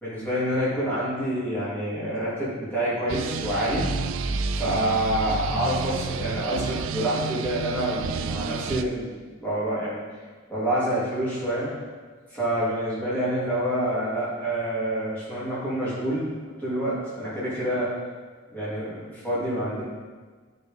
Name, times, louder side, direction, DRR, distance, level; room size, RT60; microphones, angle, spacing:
voice 1, 0.0-3.9 4.5-10.0 10.5-11.7 12.3-17.9 18.5-19.8, right 1 dB, 10° left, -11 dB, 2.8 m, -27 dB
sound 1, 3.1-8.8, right 6 dB, 60° right, 0.3 m, -31 dB
sound 2, 3.3-6.3, right 1 dB, 15° right, 0.7 m, -35 dB
13.0 x 5.3 x 3.6 m, 1.4 s
head